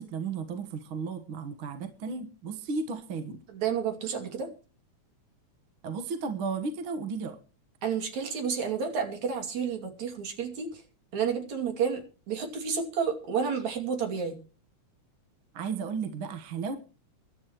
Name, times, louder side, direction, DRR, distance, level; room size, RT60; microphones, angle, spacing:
voice 1, 0.0-3.4 5.8-7.4 15.5-16.8, right 5 dB, 50° right, 8 dB, 1.9 m, -34 dB
voice 2, 3.5-4.5 7.8-10.7 11.1-14.4, right 6 dB, 65° right, 5 dB, 4.0 m, -30 dB
24.0 x 11.5 x 3.1 m, 0.36 s
omnidirectional pair, 3.5 m